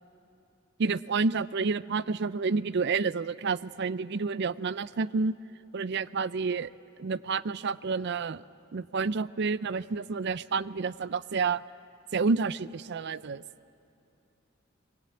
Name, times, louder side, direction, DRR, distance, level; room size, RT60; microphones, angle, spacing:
voice 1, 0.8-5.3 5.7-6.7 7.0-8.4 8.7-11.6 12.1-13.4, right 4 dB, 55° right, 17 dB, 0.5 m, -29 dB
25.5 x 22.0 x 8.6 m, 2.8 s
head